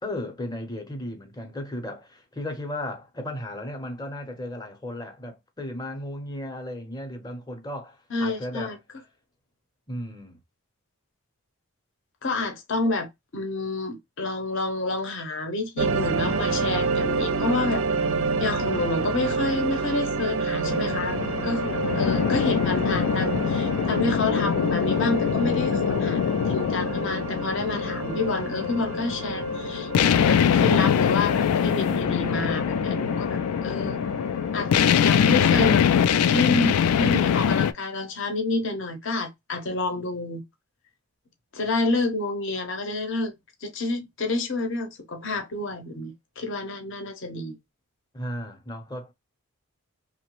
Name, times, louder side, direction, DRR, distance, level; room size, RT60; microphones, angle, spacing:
voice 1, 0.0-8.8 9.9-10.4 48.1-49.1, left 1 dB, 20° left, 0.6 m, -35 dB
voice 2, 8.1-8.8 12.2-13.1 13.3-17.9 18.4-21.2 21.4-29.9 30.3-34.0 34.5-35.9 36.1-40.4 41.5-43.3 43.6-47.5, left 3 dB, 55° left, 0.7 m, -29 dB
sound 1, 15.8-35.6, right 4 dB, 65° right, 0.4 m, -30 dB
sound 2, 20.6-37.7, left 8 dB, 80° left, 0.3 m, -23 dB
2.9 x 2.1 x 2.9 m
head